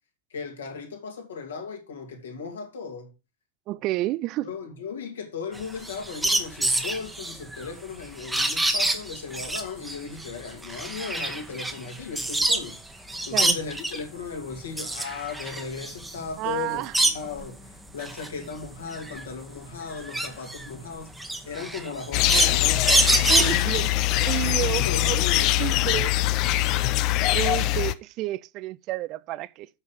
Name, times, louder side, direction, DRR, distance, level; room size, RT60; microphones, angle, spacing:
voice 1, 0.3-3.1 4.4-24.1 24.5-26.0, left 5 dB, 65° left, 2.4 m, -37 dB
voice 2, 3.7-4.5 13.3-13.6 16.4-16.9 23.3-23.9 24.2-25.2 25.5-26.2 27.3-29.7, right 17 dB, 40° right, 0.3 m, -30 dB
sound 1, 5.6-12.8 13.1-14.1 14.5-17.5 17.9-23.9, right 1 dB, 5° right, 1.2 m, -26 dB
sound 2, 22.1-27.9, left 15 dB, 40° left, 0.5 m, -23 dB
8.0 x 5.5 x 5.6 m
figure-of-eight pair, 90°, 0 cm